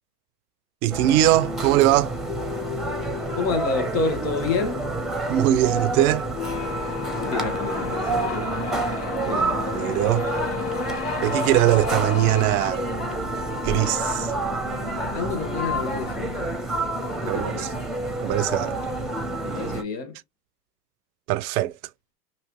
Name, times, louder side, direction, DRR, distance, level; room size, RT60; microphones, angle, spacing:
voice 1, 0.8-2.1 5.3-6.3 9.2-10.3 11.2-12.8 13.6-14.3 17.3-17.7 18.2-18.8 21.3-21.7, right 14 dB, 65° right, 0.5 m, -21 dB
sound 1, 0.9-19.8, right 1 dB, ahead, 0.6 m, -28 dB
voice 2, 3.4-4.8 7.2-8.5 9.2-9.6 15.1-16.6 17.2-17.8 19.4-20.2, left 4 dB, 80° left, 1.2 m, -29 dB
sound 2, 6.3-16.6, left 5 dB, 30° left, 0.8 m, -34 dB
3.0 x 2.7 x 2.9 m
hypercardioid pair, 100°, 48 cm